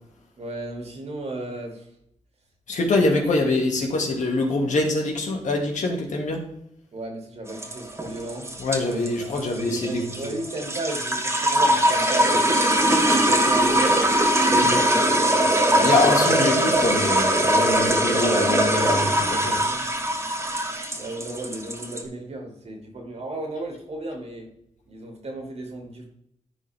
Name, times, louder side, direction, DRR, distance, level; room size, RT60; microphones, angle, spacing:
voice 1, 0.4-1.9 6.9-8.5 8.8-12.5 13.0-14.0 15.7-16.0 19.6-19.9 20.9-24.5 24.9-26.0, right 2 dB, 55° right, 1 dB, 2.6 m, -34 dB
voice 2, 2.7-6.5 8.6-10.0 14.5-14.8 15.8-19.6, left 2 dB, 75° left, 0 dB, 2.4 m, -24 dB
sound 1, 7.5-22.0, right 1 dB, 20° right, 1.7 m, -21 dB
14.0 x 4.7 x 3.6 m, 0.73 s
wide cardioid pair, 115°, 13 cm